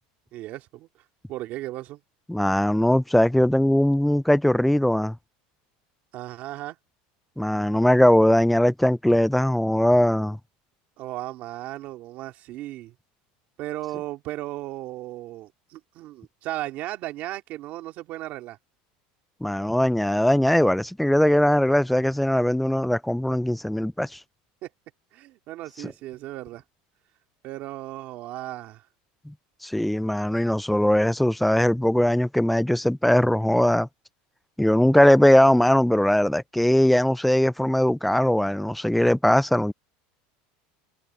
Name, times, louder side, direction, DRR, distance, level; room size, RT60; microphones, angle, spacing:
voice 1, 0.3-2.0 6.1-6.8 7.6-7.7 11.0-13.0 13.6-18.6 24.6-24.7 25.1-26.6 27.4-28.9, right 16 dB, 40° right, 2.9 m, -36 dB
voice 2, 2.3-5.2 7.4-10.4 19.4-24.2 29.3-29.4 29.6-33.9 34.6-39.7, left 1 dB, ahead, 0.4 m, -20 dB
supercardioid pair, 165°, 4 cm